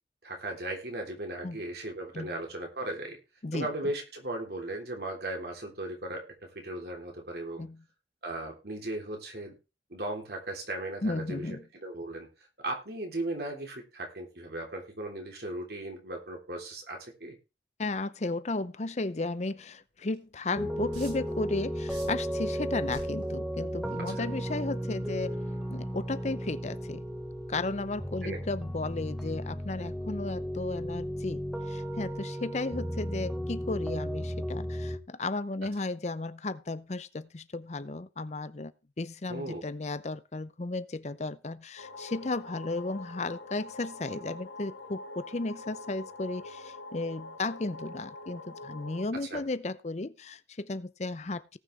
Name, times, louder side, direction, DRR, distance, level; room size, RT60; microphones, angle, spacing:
voice 1, 0.2-3.2 3.5-6.3 6.5-7.6 8.2-9.5 9.9-11.5 11.8-12.3 12.6-17.4 24.0-24.1 28.2-28.4 39.3-39.6 49.2-49.4, right 1 dB, 60° right, 3.4 m, -37 dB
voice 2, 11.0-11.6 17.8-25.4 25.7-27.0 27.5-31.4 31.7-38.7 39.0-51.6, left 2 dB, 40° left, 0.6 m, -34 dB
sound 1, 20.1-20.2 20.9-21.3 21.9-22.3 22.9-23.2 23.9-24.1, right 2 dB, 90° right, 6.7 m, -45 dB
sound 2, 20.6-35.0, equal, ahead, 1.3 m, -35 dB
sound 3, 41.8-49.0, left 2 dB, 90° left, 1.4 m, -45 dB
18.5 x 6.5 x 3.3 m
head